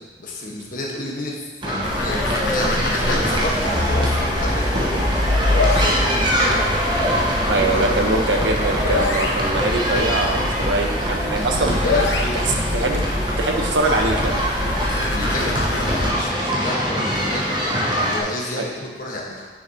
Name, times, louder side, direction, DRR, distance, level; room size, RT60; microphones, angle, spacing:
voice 1, 0.0-5.3 5.8-6.6 7.5-8.4 11.2-12.4 14.8-17.6 17.9-19.5, left 1 dB, 50° left, -2 dB, 1.4 m, -30 dB
sound 1, 1.6-18.2, equal, 25° right, 1.2 m, -23 dB
sound 2, 1.8-16.1, left 2 dB, 85° left, 1.0 m, -25 dB
voice 2, 7.5-12.1 12.5-13.0 13.4-14.4 18.6-18.7, right 2 dB, 85° right, 2 dB, 0.9 m, -23 dB
9.4 x 6.4 x 2.9 m, 1.3 s
head